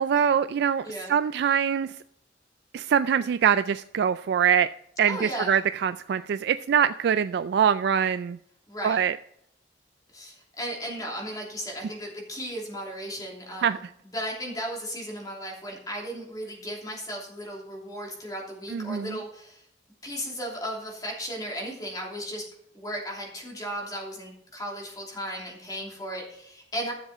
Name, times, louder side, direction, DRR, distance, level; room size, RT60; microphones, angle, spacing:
voice 1, 0.0-1.9 2.7-4.7 5.0-8.4 8.8-9.1 13.6-13.8 18.7-19.2, right 8 dB, 65° right, 13 dB, 0.3 m, -23 dB
voice 2, 0.8-1.2 5.1-5.5 8.7-9.0 10.1-13.8 14.1-19.6 20.0-22.5 22.7-26.9, equal, 20° left, -1 dB, 2.9 m, -35 dB
12.5 x 7.3 x 4.2 m, 0.74 s
head